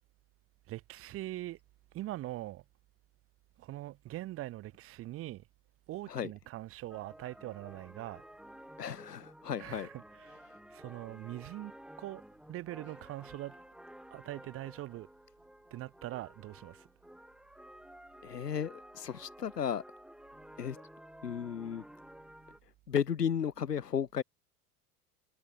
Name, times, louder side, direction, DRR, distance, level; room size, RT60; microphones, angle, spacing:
voice 1, 0.7-1.6 1.9-2.6 3.6-5.4 5.9-8.2 9.6-10.4 10.7-11.7 12.0-12.2 12.5-13.6 14.1-15.1 15.7-16.9, right 16 dB, 30° right, 1.1 m, -42 dB
sound 1, 6.9-22.6, right 1 dB, ahead, 4.1 m, -53 dB
voice 2, 8.8-9.9 18.2-19.8 20.6-20.8 21.2-21.8 22.9-24.2, left 8 dB, 80° left, 1.3 m, -34 dB
figure-of-eight pair, 85°, 47 cm